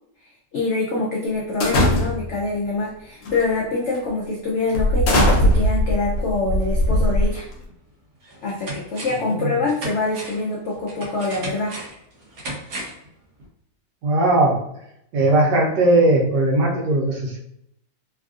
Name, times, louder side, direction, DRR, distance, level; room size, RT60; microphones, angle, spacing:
voice 1, 0.5-7.5 8.4-11.8, left 3 dB, 90° left, -3 dB, 0.6 m, -25 dB
sound 1, 1.6-2.4 3.2-3.5 3.9-4.1 4.7-7.6, left 1 dB, 60° left, 0.9 m, -19 dB
sound 2, 7.7-7.8 8.2-9.3 9.7-13.1 13.4-13.5, right 1 dB, 65° right, 1.2 m, -35 dB
voice 2, 14.0-14.6 15.1-17.4, right 2 dB, 85° right, -2 dB, 1.4 m, -18 dB
3.3 x 2.4 x 2.4 m, 0.76 s
omnidirectional pair, 1.8 m